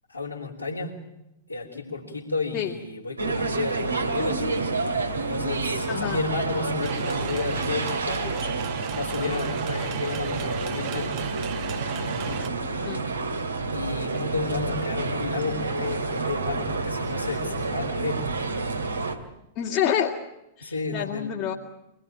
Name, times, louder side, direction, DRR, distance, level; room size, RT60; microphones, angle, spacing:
voice 1, 0.1-1.0 1.5-4.5 5.3-8.2 8.9-11.3 11.8-12.6 13.7-18.2 20.6-21.4, left 4 dB, 80° left, -5 dB, 3.6 m, -32 dB
sound 1, 3.2-19.2, right 3 dB, 75° right, 2.3 m, -29 dB
voice 2, 5.9-6.2 12.8-13.0 19.6-20.2 20.6-21.5, left 9 dB, 40° left, -2 dB, 2.5 m, -27 dB
protests casolets trombone, 6.8-12.5, right 13 dB, 35° right, 1.0 m, -38 dB
26.0 x 20.0 x 8.9 m, 0.90 s
figure-of-eight pair, 100°, 0 cm